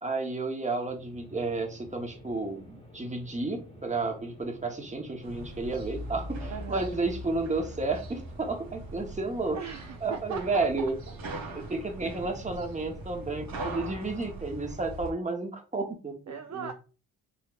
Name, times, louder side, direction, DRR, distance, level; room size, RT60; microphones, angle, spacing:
voice 1, 0.0-9.6 10.0-11.0 11.5-16.7, right 3 dB, 20° right, 1.1 m, -32 dB
sound 1, 0.7-14.5, equal, 15° left, 1.2 m, -50 dB
Distant Gunshots in Mexico City, 5.2-15.1, right 1 dB, 75° right, 1.4 m, -41 dB
voice 2, 6.5-6.9 9.5-10.9 16.3-16.7, right 8 dB, 50° right, 0.5 m, -38 dB
4.1 x 3.2 x 2.4 m
cardioid pair, 65°, 37 cm